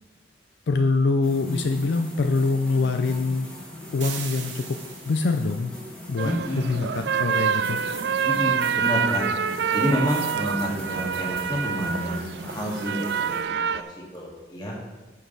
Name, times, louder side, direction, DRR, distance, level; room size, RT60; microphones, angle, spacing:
voice 1, 0.7-3.5 3.9-4.8 5.1-5.7 6.1-7.8, left 3 dB, 70° left, 7 dB, 0.4 m, -24 dB
sound 1, 1.2-13.4, left 1 dB, 5° left, 1.4 m, -40 dB
sound 2, 4.0-5.6, right 7 dB, 85° right, 1.2 m, -38 dB
voice 2, 6.2-6.7 8.2-9.2 9.7-13.8 14.1-14.7, equal, 25° left, -3 dB, 1.8 m, -29 dB
sound 3, 6.2-13.8, right 7 dB, 65° right, 0.3 m, -26 dB
9.8 x 6.1 x 4.0 m, 1.1 s
head